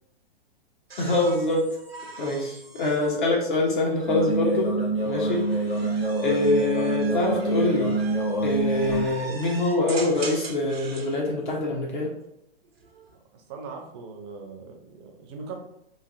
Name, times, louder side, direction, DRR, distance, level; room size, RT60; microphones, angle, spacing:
sound 1, 0.9-4.2 5.0-11.2 12.6-13.2, right 4 dB, 85° right, 0.6 m, -41 dB
voice 1, 1.0-1.7 2.2-4.7 5.0-5.4 5.7-7.9 8.4-12.1, left 2 dB, 55° left, -2 dB, 0.8 m, -25 dB
sound 2, 4.1-9.1, right 2 dB, 75° left, 1.3 m, -26 dB
voice 2, 13.1-15.6, right 4 dB, 25° right, 3 dB, 0.5 m, -40 dB
3.2 x 2.4 x 2.5 m, 0.79 s
figure-of-eight pair, 110°, 30 cm